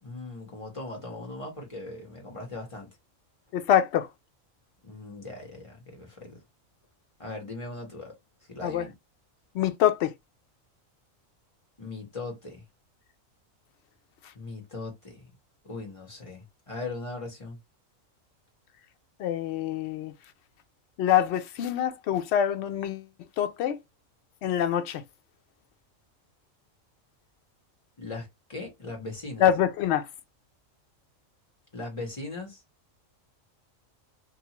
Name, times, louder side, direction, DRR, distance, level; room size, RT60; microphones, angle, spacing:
voice 1, 0.0-2.9 4.8-6.4 7.2-8.1 8.5-8.9 11.8-12.6 14.3-15.3 15.6-17.6 28.0-29.5 31.7-32.6, left 2 dB, 25° left, 1.1 m, -39 dB
voice 2, 3.5-4.1 8.6-8.8 9.5-10.1 19.2-20.1 21.0-23.1 23.4-23.8 24.4-25.0 29.4-30.1, left 10 dB, 65° left, 0.7 m, -25 dB
2.7 x 2.3 x 2.9 m
omnidirectional pair, 1.4 m